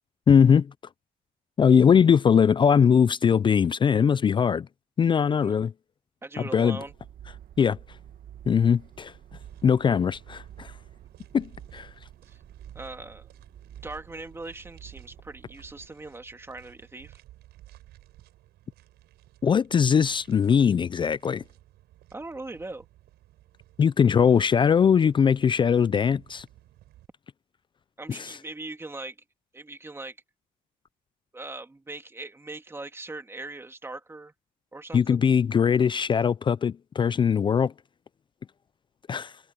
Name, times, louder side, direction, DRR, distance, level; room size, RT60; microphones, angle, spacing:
voice 1, 0.3-0.7 1.6-4.7 5.0-5.7 6.5-6.8 7.6-7.8 8.5-9.1 9.6-10.7 11.3-11.9 19.4-21.4 23.8-26.5 28.1-28.4 34.9-37.7 39.1-39.3, left 7 dB, 30° left, 0.4 m, -21 dB
voice 2, 6.2-6.9 12.3-12.4 12.7-13.3 13.8-17.2 22.1-22.8 28.0-29.2 29.5-30.2 31.3-34.3 34.7-35.3, right 2 dB, 15° right, 2.6 m, -40 dB
sound 1, 6.8-15.9, right 10 dB, 60° right, 1.8 m, -48 dB
sound 2, 9.4-27.1, right 15 dB, 80° right, 6.6 m, -56 dB
cardioid pair, 110°, 17 cm